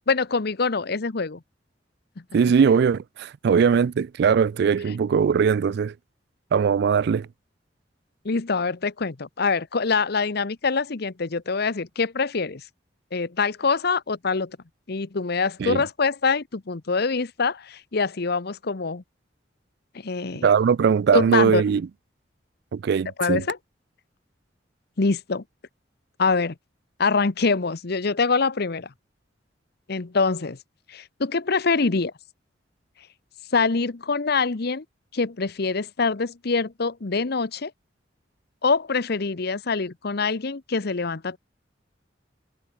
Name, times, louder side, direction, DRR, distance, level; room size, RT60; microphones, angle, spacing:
voice 1, 0.1-1.4 8.2-12.6 13.1-14.6 14.9-19.0 20.0-20.5 21.1-21.6 23.2-23.6 25.0-25.4 26.2-26.5 27.0-28.9 29.9-30.6 30.9-32.1 33.5-34.8 35.1-37.7 38.6-41.4, left 4 dB, 60° left, 0.9 m, -24 dB
voice 2, 2.3-5.9 6.5-7.3 15.6-15.8 20.4-21.8 22.7-23.4, right 6 dB, 65° right, 0.3 m, -20 dB
head